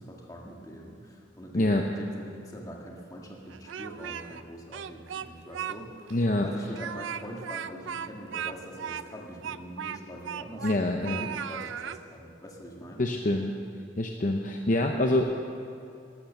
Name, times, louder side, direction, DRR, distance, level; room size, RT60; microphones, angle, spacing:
voice 1, 0.0-6.2 6.4-13.0, equal, 20° left, -1 dB, 1.7 m, -43 dB
Speech, 3.5-4.4 4.7-5.8 6.1-6.2 6.7-10.8 11.0-12.0, right 8 dB, 75° right, 0.4 m, -37 dB
voice 2, 6.1-6.5 10.6-11.3 13.0-13.5 14.0-15.2, left 1 dB, 40° left, 3 dB, 0.7 m, -25 dB
13.5 x 12.5 x 6.6 m, 2.5 s
head